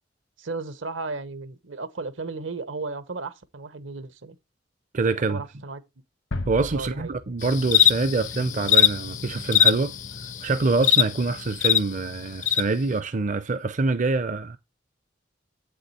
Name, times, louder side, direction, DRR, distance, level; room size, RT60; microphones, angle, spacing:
voice 1, 0.4-4.4 5.3-5.8 6.7-7.2, right 3 dB, 75° right, 1.0 m, -34 dB
voice 2, 4.9-5.4 6.5-14.6, right 3 dB, 40° right, 0.5 m, -25 dB
sound 1, 6.3-9.1, left 2 dB, 80° left, 1.3 m, -36 dB
sound 2, 7.4-11.8 12.4-12.6, left 10 dB, 40° left, 0.5 m, -21 dB
8.1 x 6.3 x 4.2 m
head